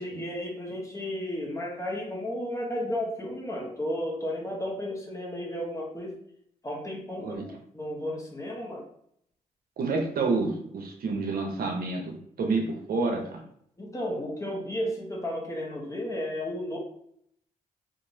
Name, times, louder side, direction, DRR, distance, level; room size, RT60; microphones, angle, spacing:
voice 1, 0.0-6.2 6.6-8.8 13.8-16.8, left 1 dB, 20° left, -2 dB, 1.1 m, -33 dB
voice 2, 9.8-13.4, right 3 dB, 65° right, 2 dB, 0.7 m, -29 dB
2.9 x 2.5 x 2.7 m, 0.69 s
supercardioid pair, 50°, 16 cm